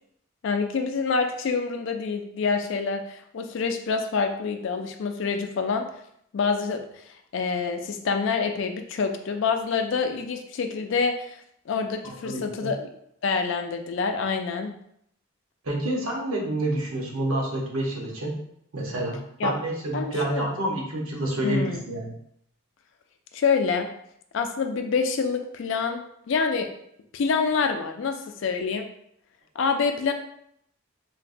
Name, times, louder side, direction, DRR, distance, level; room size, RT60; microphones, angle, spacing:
voice 1, 0.4-5.9 6.3-11.4 11.7-12.9 13.2-14.7 19.4-19.6 19.9-20.4 21.4-21.8 23.3-23.9 24.3-26.7 27.1-28.9 29.6-30.1, left 5 dB, 55° left, 5 dB, 0.3 m, -26 dB
voice 2, 12.0-12.7 15.6-18.4 18.7-22.1, right 1 dB, 75° right, -2 dB, 0.8 m, -28 dB
3.8 x 2.1 x 2.5 m, 0.72 s
head